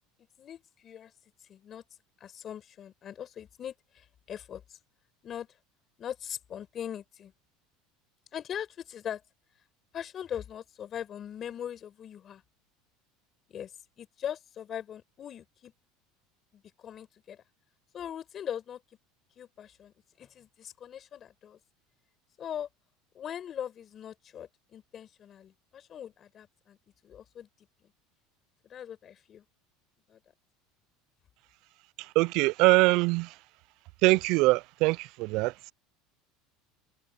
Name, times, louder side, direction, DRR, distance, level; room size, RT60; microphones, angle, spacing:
voice 1, 0.4-1.1 1.5-1.8 2.2-4.8 5.2-5.5 6.0-7.3 8.3-9.2 9.9-12.4 13.5-15.7 16.5-17.4 17.9-18.8 19.4-21.6 22.4-22.7 23.1-26.8 27.0-27.9 28.6-29.5 30.1-30.2, left 9 dB, 35° left, 5.7 m, -41 dB
voice 2, 32.0-33.3 34.0-35.7, right 23 dB, 65° right, 0.3 m, -23 dB
supercardioid pair, 125°, 0 cm